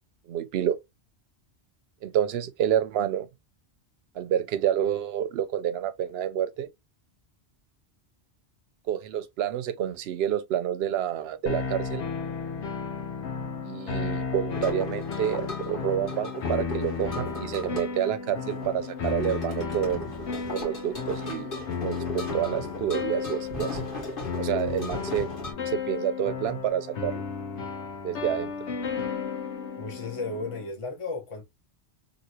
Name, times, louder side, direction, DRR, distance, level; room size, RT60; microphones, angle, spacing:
voice 1, 0.3-0.8 2.0-3.3 4.2-6.7 8.9-12.0 13.6-20.3 20.5-21.5 21.8-23.8 24.4-25.3 25.7-27.1 28.0-28.5, right 10 dB, 70° right, 0.8 m, -28 dB
sound 1, 11.5-30.7, left 5 dB, 80° left, 1.1 m, -33 dB
sound 2, 14.5-25.5, left 2 dB, 50° left, 1.5 m, -38 dB
voice 2, 29.8-31.4, left 3 dB, 30° left, 1.0 m, -34 dB
2.9 x 2.8 x 2.7 m
omnidirectional pair, 1.1 m